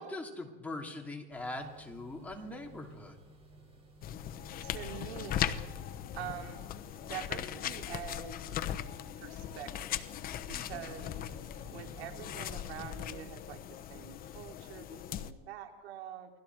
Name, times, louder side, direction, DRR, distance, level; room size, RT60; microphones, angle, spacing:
voice 1, 0.0-3.1 10.5-10.9, left 2 dB, 5° left, 0 dB, 2.7 m, -42 dB
sound 1, 1.3-12.9, right 2 dB, 20° right, 5.7 m, -56 dB
sound 2, 4.0-15.3, left 11 dB, 30° left, 1.0 m, -39 dB
voice 2, 4.6-5.6 6.1-6.6 7.1-8.6 9.2-10.1 10.5-11.1 11.7-13.6 13.9-16.3, right 10 dB, 85° right, 3 dB, 3.5 m, -45 dB
29.0 x 22.0 x 4.7 m, 1.2 s
supercardioid pair, 150°, 30 cm